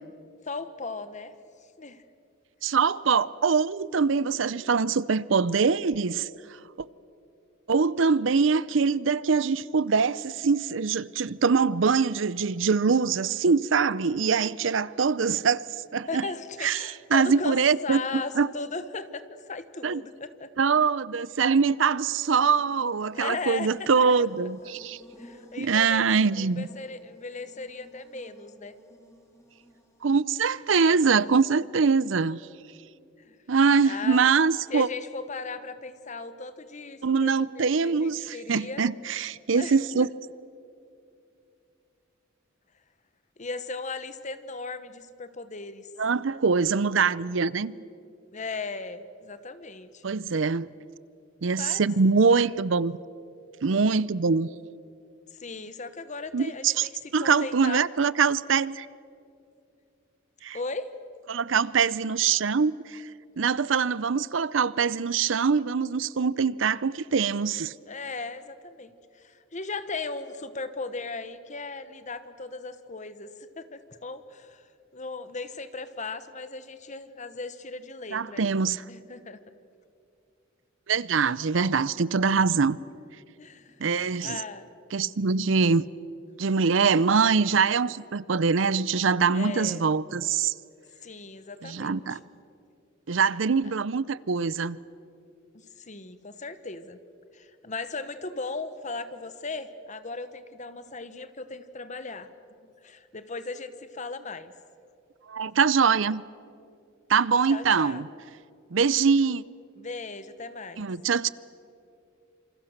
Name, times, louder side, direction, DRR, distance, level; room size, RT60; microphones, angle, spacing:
voice 1, 0.4-1.3 1.8-2.0 16.1-17.6 17.8-20.5 23.1-23.9 24.2-24.3 25.2-28.7 31.2-31.3 33.2-33.4 33.8-34.3 34.7-38.8 39.5-39.7 43.4-45.9 48.3-50.0 51.5-51.9 55.3-57.9 60.5-60.9 67.9-74.7 74.9-78.5 78.9-79.4 82.4-82.5 83.4-83.8 84.2-84.7 89.3-89.8 91.0-92.2 95.5-97.0 97.3-102.3 102.6-104.5 107.5-108.1 109.8-110.9, left 3 dB, 35° left, 1.2 m, -37 dB
voice 2, 2.6-6.3 6.8-6.9 7.7-16.2 16.6-18.5 19.8-20.0 20.6-25.0 25.6-26.7 30.0-32.4 33.5-34.9 37.0-40.1 46.0-47.7 50.0-50.7 51.4-53.0 53.6-54.5 56.3-58.9 60.4-60.6 61.3-63.1 63.4-67.7 78.1-78.8 80.9-82.8 83.8-84.4 84.9-85.8 86.4-90.5 91.6-92.2 93.1-94.8 105.3-106.2 107.1-108.1 108.7-109.4 110.8-111.3, right 5 dB, 70° right, 0.6 m, -23 dB
Buzz, 22.1-30.3, equal, 15° left, 3.9 m, -54 dB
27.5 x 26.5 x 6.6 m
head